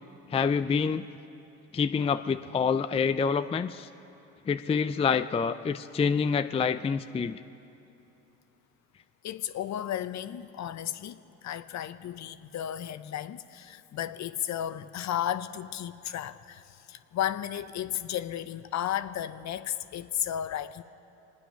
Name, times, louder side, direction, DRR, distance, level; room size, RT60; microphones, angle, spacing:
voice 1, 0.3-1.1 1.7-3.9 4.5-7.4, left 6 dB, 15° left, 0.4 m, -27 dB
voice 2, 9.2-20.8, left 11 dB, 50° left, 0.8 m, -34 dB
25.0 x 9.7 x 5.7 m
supercardioid pair, 70°, 36 cm